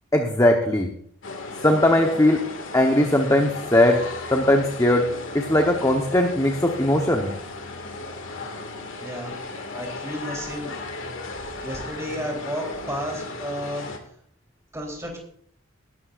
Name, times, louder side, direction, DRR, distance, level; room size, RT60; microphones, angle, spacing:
voice 1, 0.1-0.9 1.6-2.4 2.7-4.0 4.3-5.0 5.3-7.3, left 1 dB, 15° left, 2 dB, 1.0 m, -19 dB
sound 1, 1.2-14.0, left 2 dB, 75° left, 2.1 m, -35 dB
voice 2, 9.0-9.3 9.7-10.8 11.6-13.9 14.7-15.2, equal, 15° right, 0 dB, 3.5 m, -32 dB
19.5 x 12.0 x 2.5 m, 0.63 s
head